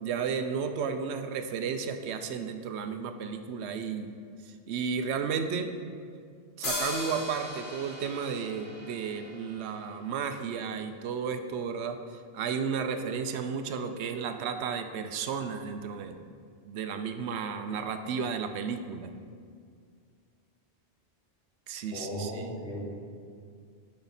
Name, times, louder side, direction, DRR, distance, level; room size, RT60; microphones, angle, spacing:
voice 1, 0.0-4.1 4.5-5.7 6.6-12.0 12.3-16.2 16.6-19.1 21.7-22.4, right 6 dB, 75° right, 8 dB, 0.8 m, -33 dB
sound 1, 6.6-10.2, left 1 dB, 60° left, 1.9 m, -38 dB
voice 2, 21.9-22.9, equal, 80° left, -5 dB, 2.1 m, -36 dB
10.5 x 4.3 x 4.1 m, 2.2 s
omnidirectional pair, 1.1 m